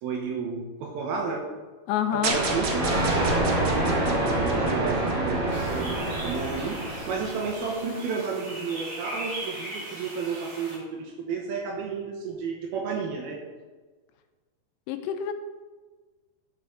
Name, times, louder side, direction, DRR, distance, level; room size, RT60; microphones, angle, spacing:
voice 1, 0.0-1.4 2.1-2.9 3.6-6.8 7.1-13.4, right 5 dB, 70° right, 1 dB, 2.5 m, -32 dB
voice 2, 1.9-2.4 14.9-15.3, left 9 dB, 80° left, 7 dB, 2.7 m, -27 dB
sound 1, 2.2-5.5, right 4 dB, 85° right, 1.5 m, -33 dB
Thunder, 2.3-7.6, right 1 dB, 30° right, 2.9 m, -26 dB
sound 2, 5.5-10.8, right 1 dB, 50° right, 1.3 m, -39 dB
12.0 x 5.7 x 3.7 m, 1.3 s
omnidirectional pair, 5.0 m